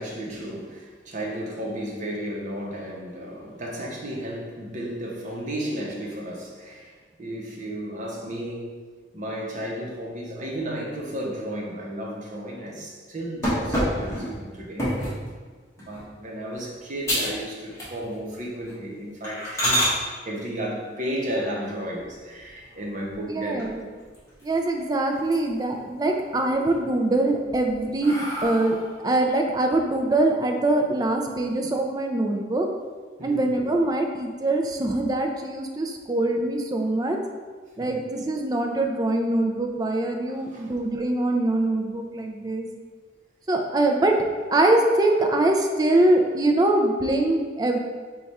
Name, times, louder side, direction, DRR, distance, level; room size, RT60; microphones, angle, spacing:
voice 1, 0.0-8.8 9.1-14.9 15.9-19.9 20.2-23.7 33.2-33.5 37.8-37.9 40.3-40.7, equal, 40° right, -2 dB, 0.8 m, -33 dB
sound 1, 13.4-15.2 15.8-16.1 16.5-16.6 17.0-17.4 17.7-18.2 18.6-18.7 19.2-19.9 21.9-22.6 23.1-23.2 23.6-23.7 24.0-24.8 25.1-25.7 26.1-26.8 27.3-29.0, equal, 15° left, 1.1 m, -28 dB
voice 2, 23.3-23.8 24.4-32.7 33.2-37.2 37.8-42.7 43.5-44.2 44.5-47.8, right 2 dB, 20° right, 3 dB, 0.4 m, -23 dB
4.7 x 2.3 x 4.1 m, 1.5 s
head